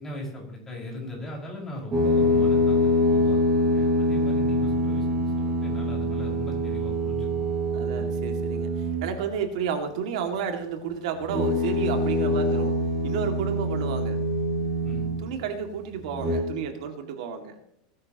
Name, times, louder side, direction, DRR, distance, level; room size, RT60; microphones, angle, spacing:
voice 1, 0.0-3.4 3.7-7.5 7.9-8.1 14.8-15.1, left 1 dB, 10° left, -3 dB, 5.3 m, -38 dB
sound 1, 1.9-9.2 11.2-15.4 16.1-16.4, left 1 dB, 20° right, 6.4 m, -24 dB
voice 2, 7.7-12.8 13.0-14.2 15.2-17.6, right 7 dB, 70° right, 5 dB, 2.2 m, -31 dB
20.5 x 13.0 x 3.0 m, 0.77 s
supercardioid pair, 155°, 4 cm